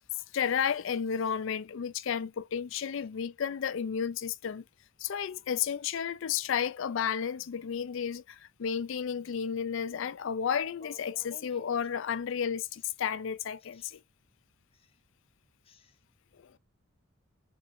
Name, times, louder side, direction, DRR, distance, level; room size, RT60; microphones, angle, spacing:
voice 1, 0.3-4.6 5.0-14.0, left 7 dB, 65° left, 0.4 m, -32 dB
voice 2, 9.9-10.2 10.8-11.9 12.7-12.9 13.7-14.0 14.7-15.0 15.6-16.0, left 1 dB, 25° left, 0.7 m, -56 dB
4.4 x 3.7 x 2.6 m
head